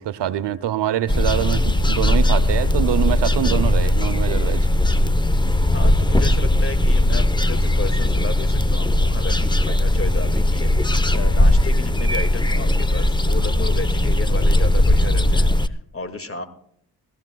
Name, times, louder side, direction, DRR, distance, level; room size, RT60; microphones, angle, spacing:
voice 1, 0.0-4.7, right 11 dB, 75° right, 13 dB, 0.8 m, -24 dB
sound 1, 1.1-15.7, left 1 dB, 10° left, 0.9 m, -18 dB
voice 2, 5.7-16.5, left 3 dB, 30° left, 8 dB, 2.1 m, -33 dB
21.5 x 15.0 x 2.3 m, 0.68 s
supercardioid pair, 50°, 42 cm